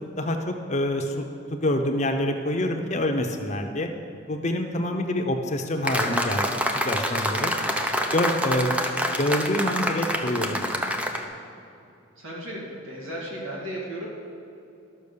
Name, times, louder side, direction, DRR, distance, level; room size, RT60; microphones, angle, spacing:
voice 1, 0.2-1.2 1.5-3.9 4.3-7.5 8.1-8.8 9.1-10.9, left 1 dB, 35° left, 4 dB, 0.8 m, -26 dB
sound 1, 5.8-11.2, equal, 5° right, 0.5 m, -27 dB
voice 2, 7.6-8.1 12.2-14.1, right 1 dB, 70° right, -4 dB, 2.4 m, -36 dB
12.5 x 6.2 x 6.8 m, 2.7 s
head